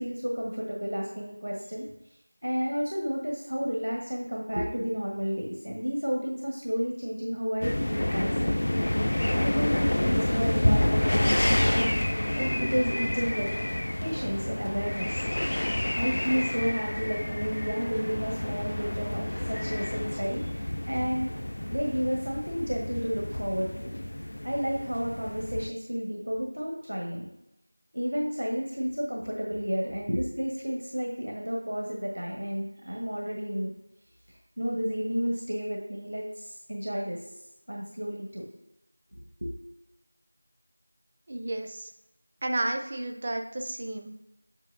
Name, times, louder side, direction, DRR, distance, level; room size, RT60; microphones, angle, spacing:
voice 1, 0.0-1.9 2.4-8.7 9.4-13.5 14.0-15.2 15.9-21.3 21.7-23.9 24.4-27.3 27.9-33.7 34.3-37.2 37.7-38.4 39.1-39.5, equal, 70° right, -1 dB, 1.4 m, -31 dB
sound 1, 7.6-25.7, left 1 dB, 45° left, 0.3 m, -29 dB
voice 2, 41.3-41.9 42.4-44.1, right 1 dB, 20° right, 3 dB, 0.4 m, -32 dB
8.1 x 6.1 x 2.6 m, 0.88 s
figure-of-eight pair, 175°, 0 cm